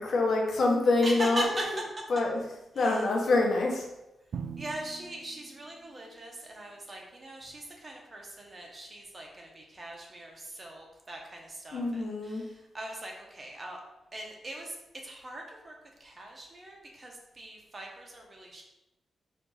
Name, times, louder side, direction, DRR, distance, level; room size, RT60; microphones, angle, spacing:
voice 1, 0.0-3.8 11.7-12.4, left 2 dB, 65° left, 0 dB, 0.9 m, -26 dB
voice 2, 1.0-1.6 2.8-3.0 4.6-13.8 14.1-14.8 15.0-15.7 16.0-18.6, right 1 dB, 30° right, 0 dB, 1.0 m, -41 dB
Drum, 4.3-6.3, right 6 dB, 70° right, 0.3 m, -42 dB
4.4 x 2.5 x 3.9 m, 0.95 s
cardioid pair, 105°, 0 cm